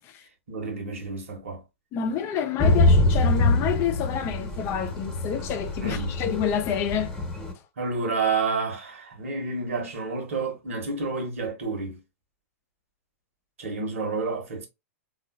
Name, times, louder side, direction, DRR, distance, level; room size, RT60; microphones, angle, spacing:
voice 1, 0.5-1.6 5.8-6.1 7.8-12.0 13.6-14.7, right 4 dB, 70° right, 1.2 m, -29 dB
voice 2, 1.9-7.2, left 8 dB, 35° left, 0.6 m, -28 dB
Thunder / Rain, 2.6-7.5, left 2 dB, 10° left, 1.0 m, -24 dB
3.7 x 2.4 x 2.3 m
hypercardioid pair, 105°, 8 cm